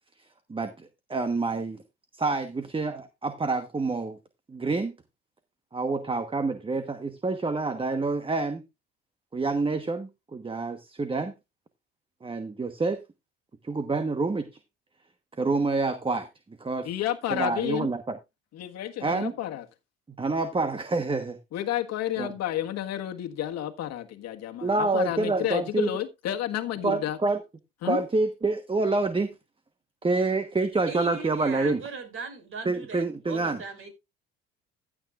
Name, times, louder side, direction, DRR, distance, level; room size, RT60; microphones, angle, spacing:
voice 1, 0.5-1.8 2.2-4.2 4.5-4.9 5.7-8.6 9.3-11.3 12.2-13.0 13.6-14.5 15.4-16.3 16.6-16.9 17.3-18.0 19.0-19.3 20.2-21.4 22.2-22.3 24.6-25.9 26.8-27.4 27.8-29.3 30.0-31.8 32.6-33.6, right 3 dB, 20° right, 1.2 m, -27 dB
voice 2, 16.8-17.9 18.5-19.6 21.5-27.2 27.8-28.0, left 12 dB, 60° left, 1.6 m, -31 dB
voice 3, 30.8-33.9, right 4 dB, 45° right, 5.4 m, -38 dB
15.0 x 8.7 x 2.5 m
supercardioid pair, 75°, 29 cm